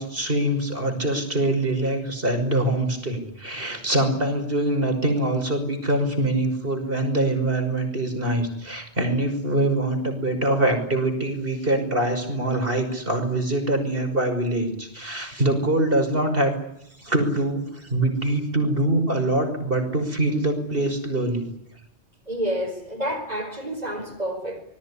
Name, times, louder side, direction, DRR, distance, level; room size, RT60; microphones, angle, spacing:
voice 1, 0.0-16.5 17.0-21.4, right 1 dB, 60° right, 6 dB, 6.1 m, -24 dB
voice 2, 22.3-24.6, equal, 35° right, -2 dB, 5.3 m, -29 dB
27.0 x 20.0 x 10.0 m, 0.81 s
omnidirectional pair, 1.1 m